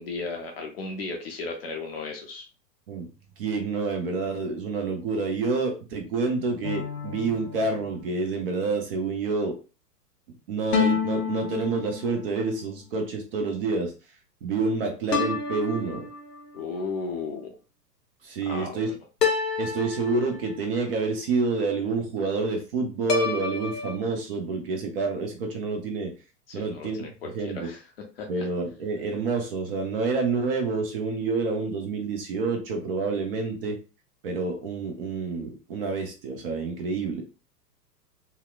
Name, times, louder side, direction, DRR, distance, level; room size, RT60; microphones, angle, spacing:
voice 1, 0.0-2.5 16.5-17.5 18.5-18.9 26.5-27.8 28.2-28.4, left 4 dB, 40° left, 2 dB, 0.5 m, -35 dB
voice 2, 3.4-9.6 10.5-13.9 14.4-16.0 18.2-18.9 19.6-26.1 26.5-27.0 27.3-27.7 28.3-33.8 34.2-37.2, right 4 dB, 35° right, 4 dB, 0.6 m, -28 dB
sound 1, 6.6-8.3 10.7-12.4 15.1-16.6 19.2-20.8 23.1-24.0, left 6 dB, 75° left, 0.7 m, -29 dB
2.8 x 2.0 x 2.3 m, 0.32 s
figure-of-eight pair, 105°, 49 cm